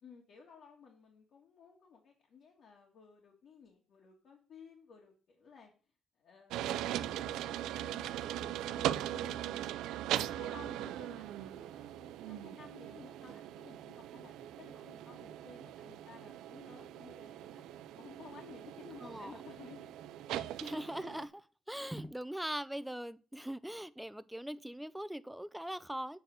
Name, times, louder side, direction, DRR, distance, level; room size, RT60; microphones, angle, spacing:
voice 1, 0.0-5.7 6.1-6.6 6.9-9.6 10.2-17.6 17.9-19.9 20.3-20.4, left 6 dB, 65° left, 2.0 m, -56 dB
sound 1, 6.5-21.3, right 12 dB, 90° right, 0.4 m, -40 dB
voice 2, 19.0-19.3 20.6-26.2, equal, 5° right, 0.5 m, -41 dB
7.8 x 4.5 x 6.3 m
cardioid pair, 90°, 0 cm